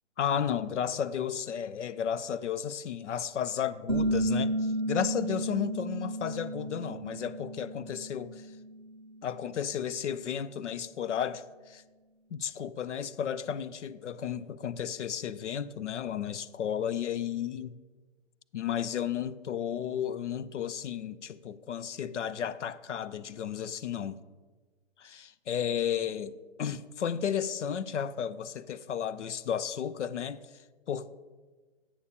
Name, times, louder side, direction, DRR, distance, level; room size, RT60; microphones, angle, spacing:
voice 1, 0.2-8.6 9.2-11.8 12.3-17.8 18.5-24.2 25.0-26.3 26.6-31.1, left 8 dB, 75° left, 0.5 m, -33 dB
sound 1, 3.9-9.3, right 1 dB, 25° right, 0.5 m, -33 dB
11.0 x 8.7 x 2.8 m
hypercardioid pair, 170°, 37 cm